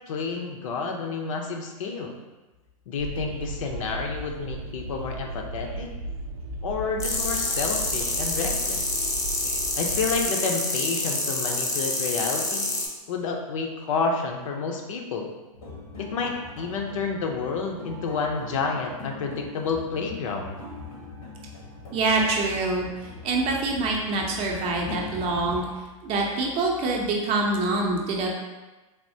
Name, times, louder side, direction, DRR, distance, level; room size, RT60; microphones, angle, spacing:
voice 1, 0.1-2.2 2.9-5.9 6.6-8.9 9.8-12.7 13.1-15.3 16.0-20.6, left 4 dB, 65° left, 2 dB, 0.6 m, -30 dB
Train, 3.0-10.2, right 2 dB, 80° right, 0.4 m, -36 dB
sound 1, 7.0-12.8, left 2 dB, 15° left, 0.5 m, -27 dB
sound 2, 15.5-25.6, left 3 dB, 90° left, 1.1 m, -41 dB
voice 2, 21.9-28.3, right 2 dB, 30° right, -1 dB, 0.6 m, -25 dB
3.4 x 2.3 x 2.7 m, 1.2 s
hypercardioid pair, 125°, 18 cm